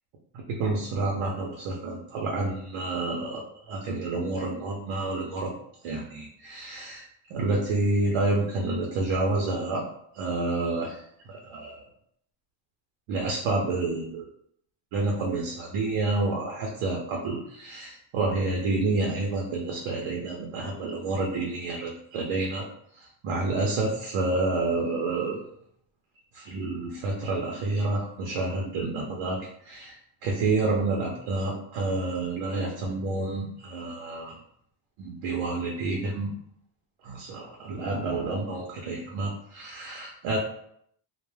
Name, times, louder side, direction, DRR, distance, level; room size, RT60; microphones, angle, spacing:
voice 1, 0.5-5.5 5.8-7.0 7.3-9.9 10.1-11.8 13.1-14.3 14.9-22.7 22.9-25.4 26.3-34.4 35.0-36.3 37.0-40.4, right 2 dB, 80° right, 0 dB, 0.6 m, -29 dB
2.2 x 2.1 x 3.1 m, 0.69 s
cardioid pair, 165°, 49 cm